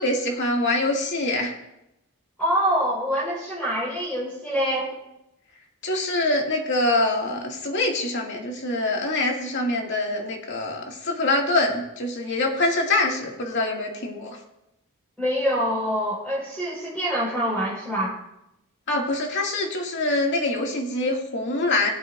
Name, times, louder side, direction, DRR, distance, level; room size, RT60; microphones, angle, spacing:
voice 1, 0.0-1.5 5.8-14.4 18.9-21.9, left 2 dB, 55° left, 0 dB, 2.3 m, -24 dB
voice 2, 2.4-4.9 15.2-18.2, equal, 5° left, -9 dB, 4.8 m, -25 dB
22.0 x 8.4 x 2.6 m, 0.86 s
head